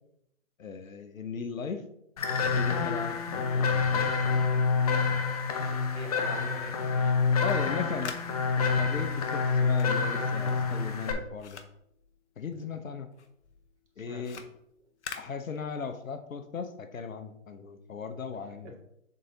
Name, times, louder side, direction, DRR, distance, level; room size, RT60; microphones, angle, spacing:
voice 1, 0.6-1.9 2.5-4.1 7.4-8.1 8.8-11.6 12.4-13.1 14.0-14.5 15.1-18.8, left 5 dB, 90° left, 9 dB, 0.8 m, -37 dB
sound 1, 2.2-11.1, left 4 dB, 30° left, 0.6 m, -27 dB
voice 2, 5.9-6.9 12.5-12.7 14.1-14.4 18.6-18.8, right 2 dB, 60° right, -1 dB, 2.2 m, -43 dB
sound 2, 7.4-12.8 13.1-16.1, left 6 dB, 60° left, 0.9 m, -47 dB
6.7 x 4.0 x 3.8 m, 0.76 s
hypercardioid pair, 145°, 39 cm